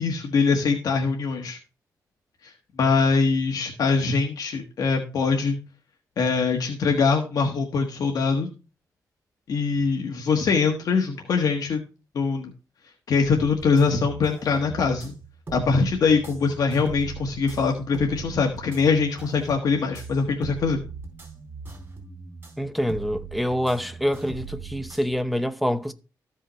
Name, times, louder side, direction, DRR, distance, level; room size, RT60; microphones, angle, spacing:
voice 1, 0.0-1.6 2.4-2.5 2.8-5.6 6.2-8.5 9.5-11.8 12.1-12.5 13.1-15.1 15.5-20.8, left 4 dB, 65° left, 1.4 m, -23 dB
sound 1, 13.2-25.1, right 5 dB, 30° right, 3.8 m, -40 dB
voice 2, 22.6-25.9, equal, ahead, 0.7 m, -26 dB
14.0 x 5.5 x 3.1 m
wide cardioid pair, 135°, 7 cm